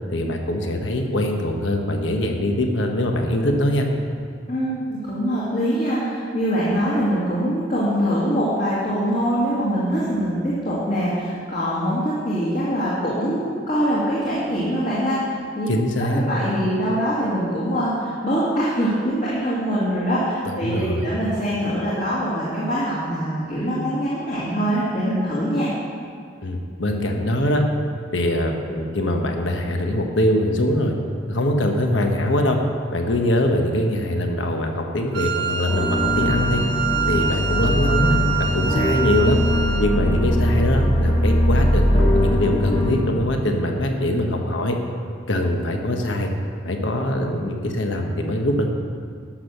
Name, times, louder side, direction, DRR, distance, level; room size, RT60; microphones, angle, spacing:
voice 1, 0.1-3.9 15.7-16.2 20.4-21.1 26.4-27.6 28.1-30.9 31.3-32.6 32.9-36.6 37.1-39.4 39.8-44.8 45.3-46.3 46.6-48.7, left 1 dB, 80° left, 3 dB, 1.2 m, -22 dB
voice 2, 4.5-15.7 16.0-25.7, equal, 45° left, -8 dB, 2.2 m, -23 dB
Wind instrument woodwind instrument, 35.1-40.0, right 7 dB, 60° right, 0.6 m, -26 dB
sound 1, 35.7-42.9, left 1 dB, 25° left, 1.6 m, -21 dB
12.0 x 6.3 x 6.7 m, 2.2 s
head